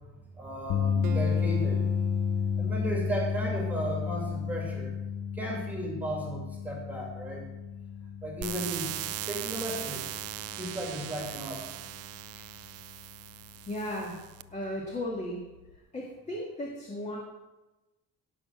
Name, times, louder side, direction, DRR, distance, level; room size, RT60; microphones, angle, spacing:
voice 1, 0.4-1.8 2.6-4.9 5.3-7.4 8.2-8.9 9.3-10.0 10.6-11.6 12.4-12.5, right 1 dB, 5° right, -1 dB, 2.3 m, -35 dB
sound 1, 0.7-13.0 13.3-13.6 15.7-15.8, left 7 dB, 70° left, 0.9 m, -32 dB
Acoustic guitar, 1.0-4.4, right 6 dB, 80° right, 1.0 m, -44 dB
sound 2, 8.4-14.4, right 14 dB, 50° right, 0.4 m, -39 dB
voice 2, 13.7-14.2 14.5-15.4 15.9-17.2, left 1 dB, 20° left, -2 dB, 1.8 m, -35 dB
17.5 x 5.9 x 6.2 m, 1.1 s
cardioid pair, 160°, 32 cm